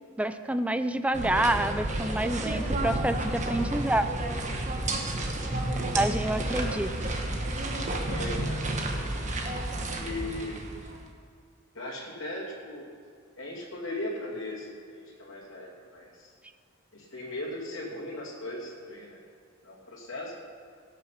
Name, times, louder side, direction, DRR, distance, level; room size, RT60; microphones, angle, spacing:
voice 1, 0.2-4.1 5.9-6.9, right 1 dB, 5° right, 10 dB, 0.4 m, -28 dB
sound 1, 1.1-11.1, right 1 dB, 35° right, 1.3 m, -31 dB
voice 2, 7.9-9.5 9.9-10.6 11.7-12.9 13.4-16.3 16.9-19.2 19.6-20.3, left 1 dB, 70° left, -5 dB, 2.7 m, -38 dB
17.5 x 6.8 x 5.8 m, 2.1 s
head